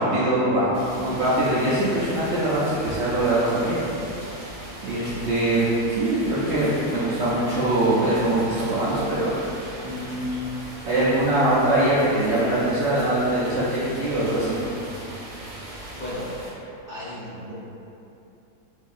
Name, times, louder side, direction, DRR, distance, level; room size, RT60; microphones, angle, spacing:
voice 1, 0.0-3.8 4.8-5.6 5.9-9.4 9.8-10.2 10.9-14.6, right 1 dB, 60° right, -10 dB, 0.8 m, -22 dB
sound 1, 0.7-16.5, right 1 dB, 90° right, 1.4 m, -39 dB
voice 2, 15.9-16.3 16.9-17.5, left 1 dB, 40° left, -13 dB, 0.9 m, -34 dB
4.7 x 2.8 x 2.5 m, 2.8 s
omnidirectional pair, 1.6 m